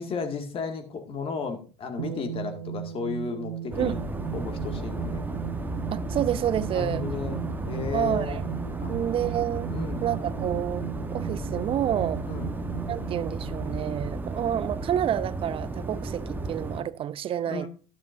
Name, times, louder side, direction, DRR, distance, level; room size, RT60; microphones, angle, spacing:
voice 1, 0.0-4.0 4.3-5.2 6.7-8.4 8.8-9.0 9.7-10.0 12.2-12.5 17.5-17.7, left 5 dB, 35° left, 2.1 m, -34 dB
sound 1, 2.0-14.8, right 10 dB, 80° right, 1.7 m, -37 dB
sound 2, 3.7-16.8, right 2 dB, 10° right, 1.2 m, -33 dB
voice 2, 5.9-7.0 7.9-8.4 8.9-9.7 10.0-12.2 12.9-17.7, right 10 dB, 35° right, 0.6 m, -29 dB
12.0 x 11.0 x 2.6 m
hypercardioid pair, 80°, 15 cm